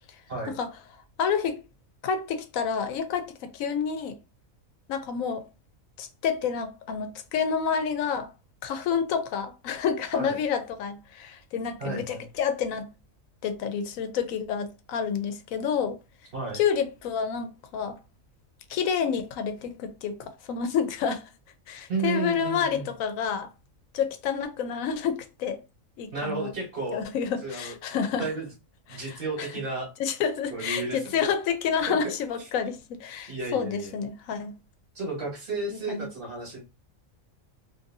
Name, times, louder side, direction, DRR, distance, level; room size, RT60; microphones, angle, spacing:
voice 1, 1.2-1.6 2.0-4.2 4.9-5.4 6.0-8.3 8.6-12.9 13.4-16.0 16.5-18.0 18.7-21.3 21.7-23.5 23.9-25.6 26.0-26.5 26.9-28.3 28.9-29.5 30.0-34.5 35.7-36.1, left 7 dB, 85° left, 1.0 m, -29 dB
voice 2, 11.8-12.2 16.3-16.6 21.9-22.9 26.1-27.0 27.4-27.7 28.2-28.5 28.9-29.9 30.5-31.2 31.9-32.0 33.3-34.0 34.9-36.6, right 3 dB, 45° right, 1.3 m, -32 dB
2.6 x 2.6 x 2.6 m
omnidirectional pair, 1.4 m